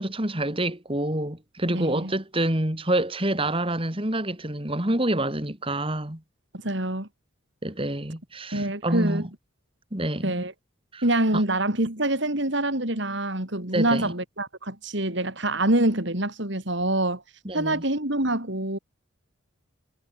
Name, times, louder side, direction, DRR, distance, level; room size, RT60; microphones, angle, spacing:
voice 1, 0.0-6.2 7.6-9.3 9.9-10.5 10.9-11.0 11.3-11.4 13.7-14.1 17.4-17.8, right 1 dB, 25° right, 2.9 m, -27 dB
voice 2, 1.7-2.1 6.6-7.1 8.5-9.3 10.2-10.5 11.0-17.2 17.5-18.8, right 1 dB, 55° right, 3.9 m, -25 dB
head